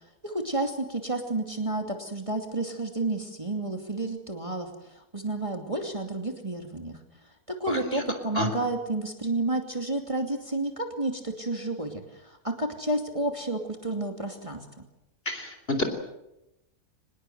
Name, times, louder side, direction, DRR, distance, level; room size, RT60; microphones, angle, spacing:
voice 1, 0.0-7.0 7.5-14.7, right 2 dB, 20° right, 3 dB, 2.7 m, -31 dB
voice 2, 7.7-8.0 8.4-8.5 15.3-15.8, left 1 dB, 35° left, 7 dB, 4.0 m, -29 dB
25.0 x 20.5 x 8.0 m, 0.89 s
omnidirectional pair, 1.7 m